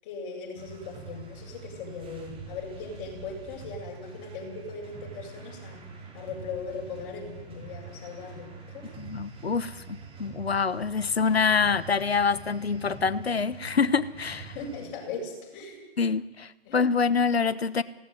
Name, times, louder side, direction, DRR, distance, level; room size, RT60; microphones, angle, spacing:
voice 1, 0.0-5.8 6.1-8.9 14.5-15.9 16.6-16.8, left 4 dB, 30° left, 0 dB, 7.9 m, -39 dB
sound 1, 0.6-14.9, right 4 dB, 15° right, 4.7 m, -45 dB
voice 2, 9.0-14.5 16.0-17.8, left 5 dB, 75° left, 16 dB, 1.3 m, -26 dB
19.5 x 18.0 x 9.4 m, 1.0 s
figure-of-eight pair, 120°, 32 cm